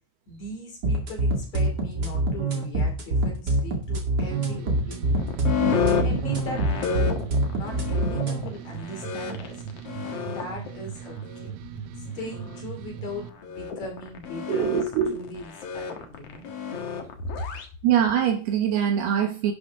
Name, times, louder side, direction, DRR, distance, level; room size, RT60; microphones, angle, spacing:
voice 1, 0.3-5.3 5.6-9.6 10.0-11.2 12.0-14.8 15.1-15.4 15.7-16.5 17.2-17.3, equal, 45° left, 1 dB, 3.6 m, -39 dB
sound 1, 0.8-8.4, right 2 dB, 45° right, 1.3 m, -25 dB
sound 2, 4.2-13.3, right 9 dB, 90° right, 3.4 m, -39 dB
sound 3, 5.2-17.7, left 6 dB, 90° left, 1.3 m, -30 dB
voice 2, 14.5-15.3 17.4-17.5 17.8-19.5, right 8 dB, 70° right, 5 dB, 2.6 m, -23 dB
11.5 x 10.5 x 3.6 m, 0.38 s
omnidirectional pair, 5.4 m